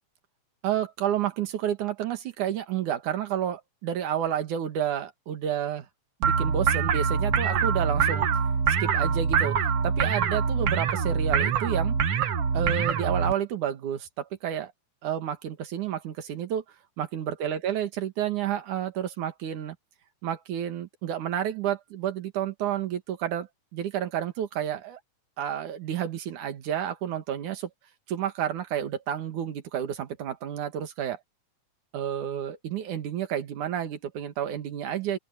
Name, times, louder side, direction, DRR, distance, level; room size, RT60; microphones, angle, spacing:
voice 1, 0.6-5.9 6.2-8.3 8.7-9.6 9.8-12.0 12.5-14.7 15.0-16.6 17.0-19.8 20.2-25.0 25.4-27.7 28.1-31.2 31.9-35.2, right 10 dB, 80° right, 3.2 m, -30 dB
sound 1, 6.2-13.3, right 6 dB, 55° right, 2.2 m, -24 dB
open air
omnidirectional pair, 3.4 m